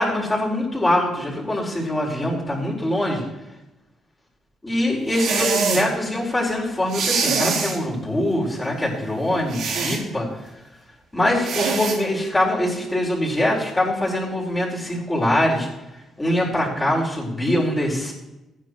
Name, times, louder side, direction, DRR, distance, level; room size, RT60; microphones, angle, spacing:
voice 1, 0.0-3.2 4.6-10.5 11.1-15.7 16.2-18.1, left 1 dB, 15° left, -4 dB, 4.3 m, -23 dB
sound 1, 5.1-5.9 6.9-7.8 9.5-10.0 11.4-12.0, right 5 dB, 75° right, 1.9 m, -23 dB
15.5 x 9.8 x 3.0 m, 0.97 s
cardioid pair, 90°, 0 cm